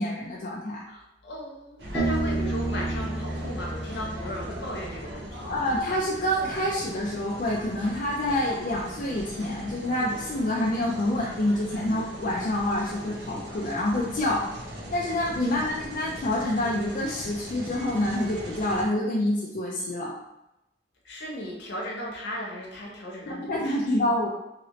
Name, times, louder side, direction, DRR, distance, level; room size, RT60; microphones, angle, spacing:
voice 1, 0.0-0.8 5.5-14.5 14.9-20.1 23.3-24.3, left 1 dB, 50° left, -4 dB, 0.4 m, -27 dB
voice 2, 0.9-5.5 15.5-15.8 21.0-24.0, equal, 70° left, -2 dB, 0.9 m, -37 dB
sound 1, 1.8-18.8, right 1 dB, 65° right, 0.7 m, -39 dB
Bass guitar, 1.9-5.5, right 2 dB, 5° right, 1.0 m, -31 dB
2.9 x 2.8 x 3.0 m, 0.88 s
head